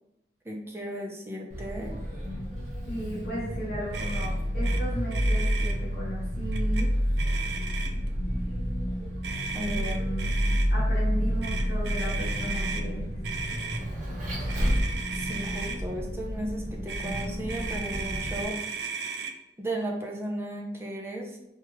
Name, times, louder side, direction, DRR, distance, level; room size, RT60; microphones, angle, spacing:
voice 1, 0.4-2.0 9.5-9.8 15.2-18.6 19.6-21.4, right 1 dB, 15° right, -1 dB, 0.6 m, -35 dB
Vehicle, 1.5-18.4, equal, 45° right, 1.2 m, -29 dB
voice 2, 2.9-6.9 9.5-10.3 10.7-13.1, right 1 dB, 55° left, -7 dB, 0.9 m, -35 dB
Motor vehicle (road), 3.9-4.3 4.6-4.8 5.1-5.7 6.5-6.8 7.2-8.1 9.2-10.7 11.4-12.8 13.2-13.8 14.5-15.8 16.9-19.3, right 5 dB, 60° right, 0.4 m, -35 dB
4.4 x 2.4 x 3.0 m, 0.85 s
head